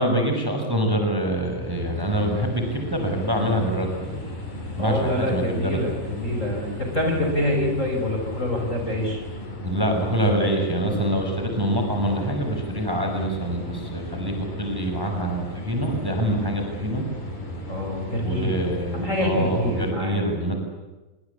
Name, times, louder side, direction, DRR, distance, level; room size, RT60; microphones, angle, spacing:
voice 1, 0.0-4.2 4.8-6.0 9.6-17.1 18.2-20.6, right 1 dB, 5° right, 3 dB, 5.9 m, -25 dB
sound 1, 1.2-19.9, left 1 dB, 70° left, 7.1 m, -35 dB
voice 2, 4.8-9.2 17.7-18.6 18.9-20.3, left 1 dB, 20° left, 2 dB, 5.9 m, -26 dB
27.5 x 25.5 x 8.4 m, 1.1 s
omnidirectional pair, 3.9 m